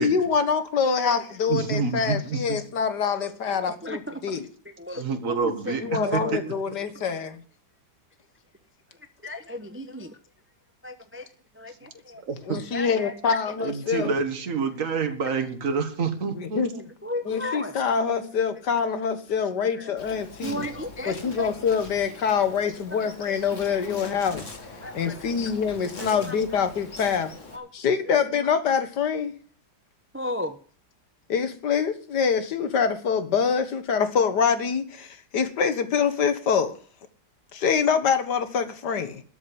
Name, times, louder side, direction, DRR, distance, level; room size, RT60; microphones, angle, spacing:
voice 1, 0.0-4.4 5.8-7.4 12.5-14.1 16.4-16.7 17.3-20.6 21.1-24.4 24.9-27.3 27.7-29.3 31.3-36.7 37.5-39.2, left 6 dB, 65° left, 10 dB, 1.9 m, -25 dB
voice 2, 0.9-1.2 3.2-4.2 4.6-7.0 9.2-10.2 10.8-11.3 11.5-12.2 12.7-13.5 15.3-15.4 16.7-17.8 18.2-18.3 19.5-19.9 20.4-21.6 22.9-23.3 24.8-25.5 25.9-26.6 27.0-27.2 27.5-27.7 28.1-28.5 30.1-30.6, left 1 dB, 10° right, 8 dB, 0.6 m, -36 dB
voice 3, 1.5-2.6 4.9-6.4 12.3-12.6 13.6-16.6, right 5 dB, 45° right, 7 dB, 2.0 m, -28 dB
Insect, 20.0-27.6, left 3 dB, 40° left, 2.7 m, -42 dB
13.0 x 6.1 x 9.7 m, 0.42 s
omnidirectional pair, 2.0 m